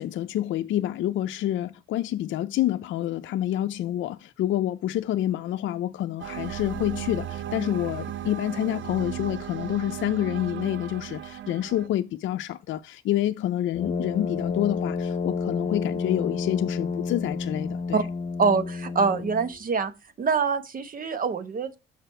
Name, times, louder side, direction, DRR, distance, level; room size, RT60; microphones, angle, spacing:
voice 1, 0.0-18.0, left 12 dB, 75° left, 0.5 m, -28 dB
sound 1, 6.2-11.9, right 10 dB, 70° right, 0.6 m, -36 dB
Brass instrument, 13.7-19.6, left 5 dB, 45° left, 1.0 m, -30 dB
voice 2, 18.4-19.9 20.2-21.7, right 5 dB, 45° right, 1.1 m, -25 dB
6.8 x 5.0 x 4.4 m
cardioid pair, 90°, 20 cm